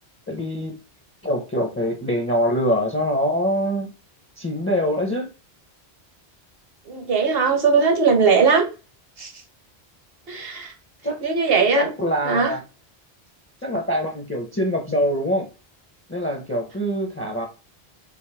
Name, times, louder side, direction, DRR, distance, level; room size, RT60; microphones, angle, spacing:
voice 1, 0.3-0.8 1.2-3.9 4.4-5.3 11.0-11.2 11.7-12.6 13.6-15.5 16.1-17.5, equal, 15° left, 0.7 m, -24 dB
voice 2, 6.9-8.7 9.2-9.3 10.3-10.7 11.2-11.9 12.2-12.5, right 5 dB, 65° right, 1.3 m, -19 dB
5.0 x 3.1 x 3.4 m
omnidirectional pair, 1.1 m